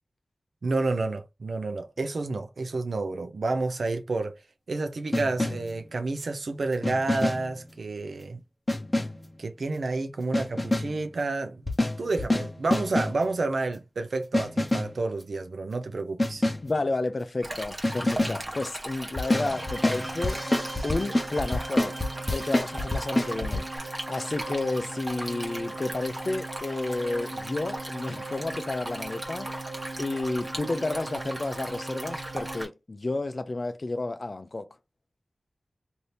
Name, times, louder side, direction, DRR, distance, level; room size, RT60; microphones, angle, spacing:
voice 1, 0.6-4.4 4.7-8.4 9.4-11.7 12.0-16.4, right 3 dB, 90° right, 0.6 m, -30 dB
sound 1, 5.1-5.8 6.8-7.6 8.7-9.3 10.3-11.0 11.7-13.3 14.3-15.0 16.2-16.7 17.8-18.5 19.2-23.6, left 1 dB, 30° left, 0.8 m, -27 dB
voice 2, 16.6-20.4 20.8-22.0 22.3-23.7 24.1-29.5 30.0-34.7, left 2 dB, 55° left, 0.5 m, -31 dB
Stream, 17.4-32.7, right 1 dB, 35° right, 1.1 m, -38 dB
sound 2, 19.1-32.6, right 2 dB, 60° right, 1.1 m, -40 dB
2.7 x 2.7 x 3.3 m
wide cardioid pair, 50°, 0 cm